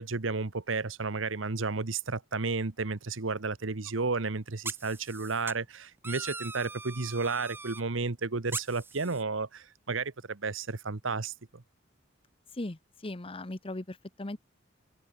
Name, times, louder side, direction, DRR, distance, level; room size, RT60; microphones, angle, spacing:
voice 1, 0.0-11.6, right 4 dB, 75° right, 1.2 m, -32 dB
sound 1, 3.9-4.0 4.6-5.5 6.0-7.8 8.5-9.2, right 4 dB, 10° right, 0.5 m, -40 dB
voice 2, 12.5-14.4, left 1 dB, 30° left, 1.0 m, -38 dB
head